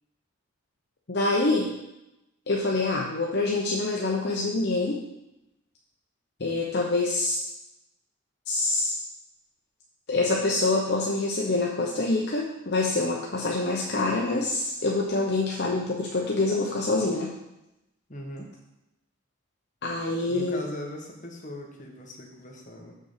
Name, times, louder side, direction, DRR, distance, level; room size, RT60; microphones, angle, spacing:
voice 1, 1.1-1.7 2.5-5.0 6.4-7.4 8.5-8.9 10.1-17.3 19.8-20.6, left 2 dB, 55° left, -2 dB, 0.8 m, -26 dB
voice 2, 18.1-18.5 20.3-23.0, left 1 dB, 35° left, 0 dB, 1.4 m, -40 dB
6.7 x 5.0 x 6.7 m, 0.91 s
head